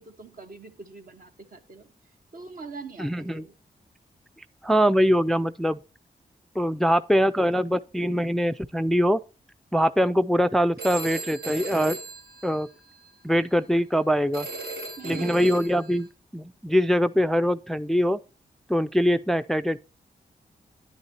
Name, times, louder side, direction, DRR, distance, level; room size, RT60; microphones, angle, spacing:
voice 1, 0.0-1.9 2.3-3.5 15.0-15.5, right 4 dB, 60° right, 1.3 m, -43 dB
voice 2, 3.0-3.4 4.6-5.8 6.6-9.2 9.7-12.0 12.4-12.7 13.2-14.5 15.0-18.2 18.7-19.8, equal, ahead, 0.3 m, -23 dB
Telephone, 10.8-13.1 14.3-16.1, right 3 dB, 90° right, 3.7 m, -37 dB
10.5 x 9.6 x 2.8 m
cardioid pair, 65°, 16 cm